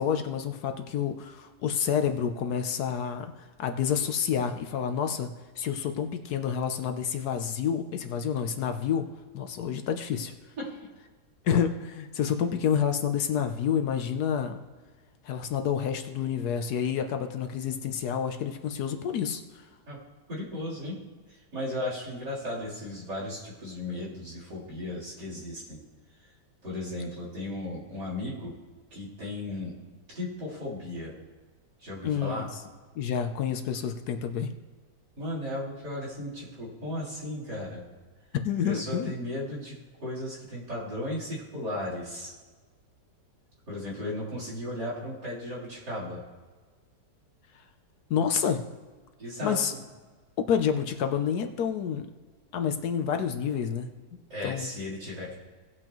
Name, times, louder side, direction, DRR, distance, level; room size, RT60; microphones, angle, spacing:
voice 1, 0.0-3.3 3.6-5.3 5.6-9.1 9.3-10.3 11.4-14.6 15.2-19.6 32.0-32.4 33.0-34.5 38.4-39.1 48.1-48.6 49.4-49.7 50.4-52.1 52.5-53.9 54.4-54.7, left 8 dB, 70° left, 6 dB, 1.1 m, -28 dB
voice 2, 20.3-21.0 21.3-25.8 26.6-28.5 28.9-29.7 30.1-31.1 31.8-32.5 35.2-37.8 38.6-42.3 43.7-46.2 49.2-49.8 54.3-55.3, left 1 dB, 70° right, -6 dB, 4.3 m, -35 dB
18.5 x 7.8 x 3.0 m, 1.4 s
omnidirectional pair, 1.9 m